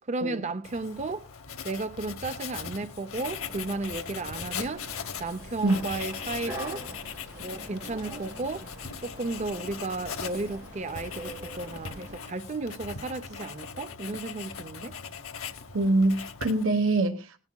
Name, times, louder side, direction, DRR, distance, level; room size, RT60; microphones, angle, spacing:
voice 1, 0.1-1.3 1.6-4.9 5.2-6.8 7.4-8.7 9.0-15.0, right 3 dB, 35° right, 0.5 m, -34 dB
Writing, 0.6-16.8, left 6 dB, 85° left, 1.0 m, -40 dB
sound 1, 3.2-12.2, right 1 dB, 15° right, 5.4 m, -44 dB
voice 2, 15.7-17.4, right 2 dB, 70° right, 1.1 m, -24 dB
20.0 x 10.5 x 2.2 m
head